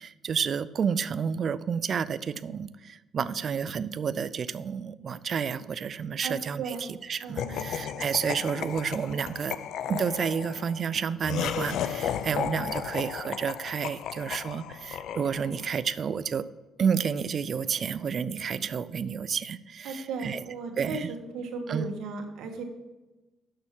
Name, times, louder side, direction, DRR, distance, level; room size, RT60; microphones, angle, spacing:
voice 1, 0.0-9.5 9.9-16.4 16.8-20.4 20.8-21.1 21.7-21.8, right 7 dB, 50° right, 15 dB, 0.4 m, -30 dB
voice 2, 6.2-6.8 7.2-8.1 19.8-22.6, right 4 dB, 75° right, 3 dB, 1.4 m, -36 dB
Laughter, 7.4-15.7, left 9 dB, 75° left, 0.4 m, -34 dB
6.7 x 5.8 x 7.3 m, 1.1 s
cardioid pair, 100°, 0 cm